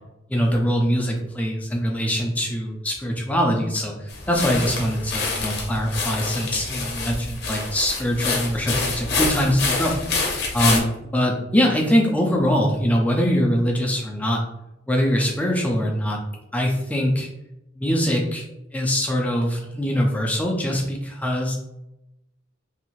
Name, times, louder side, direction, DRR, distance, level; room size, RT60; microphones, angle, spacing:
voice 1, 0.3-10.2 10.5-14.4 14.9-16.2 16.5-17.3 17.8-18.5 18.7-21.5, equal, 5° left, -1 dB, 0.4 m, -23 dB
sound 1, 4.1-10.8, left 3 dB, 55° left, 0.7 m, -27 dB
2.7 x 2.5 x 2.9 m, 0.90 s
head